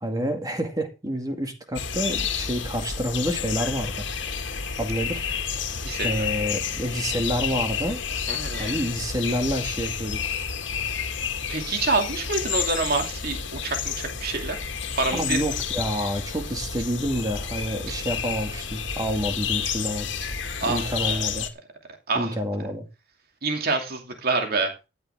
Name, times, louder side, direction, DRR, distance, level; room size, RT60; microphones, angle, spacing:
voice 1, 0.0-4.1 4.8-5.3 6.0-8.0 8.6-10.4 15.1-20.1 20.7-21.5 22.1-22.9, equal, 20° right, 2.2 m, -28 dB
sound 1, 1.8-21.5, left 6 dB, 75° left, 2.0 m, -30 dB
voice 2, 5.8-6.3 8.3-8.7 11.5-14.6 14.9-15.4 20.6-21.2 22.1-22.3 23.4-24.7, right 3 dB, 55° right, 2.7 m, -27 dB
14.0 x 10.5 x 3.7 m
head